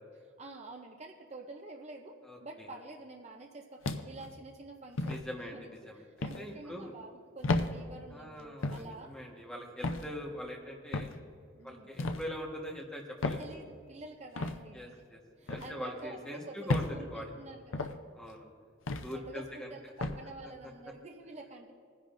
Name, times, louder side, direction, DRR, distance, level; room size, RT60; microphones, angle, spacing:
voice 1, 0.1-5.2 5.5-9.1 11.5-11.9 13.4-15.0 15.4-17.9 19.1-21.7, right 2 dB, 30° right, 2 dB, 0.6 m, -48 dB
voice 2, 2.2-2.7 5.0-6.0 6.4-6.9 8.1-11.1 11.6-13.4 14.7-15.2 15.4-17.3 18.1-18.5 19.0-19.7, equal, 5° left, -2 dB, 1.3 m, -42 dB
sound 1, 3.8-4.3 5.0-5.2 6.2-6.4 7.4-7.7 8.6-8.9 9.8-10.1 10.9-11.2 12.0-12.3 13.2-13.5 14.4-14.6 15.5-15.7 16.7-16.9 17.7-18.0 18.9-19.1 20.0-20.2, left 2 dB, 75° left, 0.6 m, -32 dB
20.0 x 10.5 x 2.6 m, 2.2 s
head